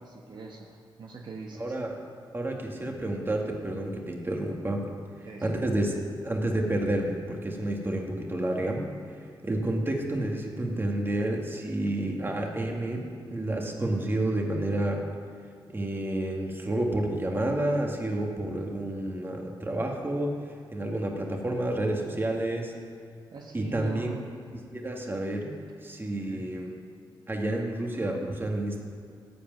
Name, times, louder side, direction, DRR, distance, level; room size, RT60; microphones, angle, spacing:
voice 1, 0.0-1.8 5.2-5.6 23.3-24.2 26.2-26.5, right 4 dB, 60° right, 0 dB, 1.3 m, -42 dB
voice 2, 1.6-2.0 2.3-4.9 5.4-5.9 6.2-8.8 9.4-15.0 15.7-22.7 23.5-24.1 24.7-25.5 25.8-26.7 27.3-28.8, right 1 dB, 25° right, 0 dB, 2.1 m, -30 dB
14.5 x 5.1 x 9.4 m, 2.3 s
cardioid pair, 70°, 8 cm